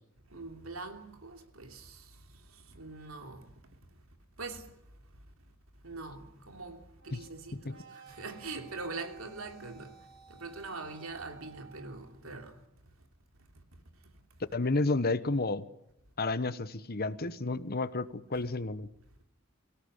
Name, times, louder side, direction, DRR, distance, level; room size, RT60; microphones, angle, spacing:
voice 1, 0.3-2.1 2.7-3.5 4.4-4.7 5.8-9.9 10.3-12.5 18.3-18.4, right 3 dB, 80° right, 3.1 m, -43 dB
sound 1, 6.9-12.1, right 5 dB, 65° right, 7.6 m, -56 dB
voice 2, 14.5-15.6 16.2-18.9, left 3 dB, 50° left, 1.1 m, -31 dB
24.0 x 17.0 x 9.8 m
head